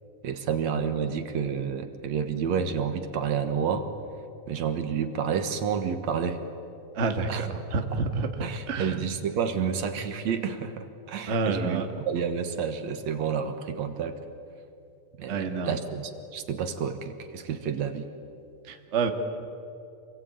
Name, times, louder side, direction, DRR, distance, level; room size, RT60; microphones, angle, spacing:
voice 1, 0.2-3.9 4.5-6.4 7.3-7.5 7.9-8.0 8.4-14.2 15.2-18.1, right 7 dB, 70° right, 8 dB, 2.5 m, -30 dB
voice 2, 6.9-8.3 8.7-9.0 11.3-11.9 15.3-15.7 18.7-19.1, right 4 dB, 30° right, 5 dB, 1.6 m, -28 dB
28.0 x 21.0 x 9.4 m, 2.7 s
omnidirectional pair, 3.4 m